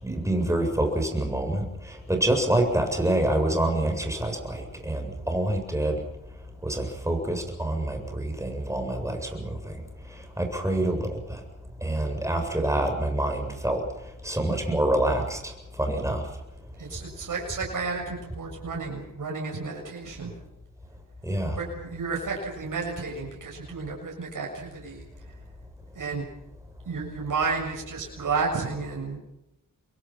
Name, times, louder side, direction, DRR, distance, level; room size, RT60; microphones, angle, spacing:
voice 1, 0.0-6.0 6.6-9.7 10.4-11.4 11.8-13.8 14.2-15.5 15.8-16.3 21.2-21.6, right 1 dB, 10° right, 4 dB, 7.7 m, -26 dB
voice 2, 16.8-20.3 21.5-25.0 25.9-26.3 26.9-29.2, right 4 dB, 75° right, -1 dB, 7.0 m, -32 dB
28.0 x 23.5 x 5.9 m, 0.83 s
cardioid pair, 65°, 32 cm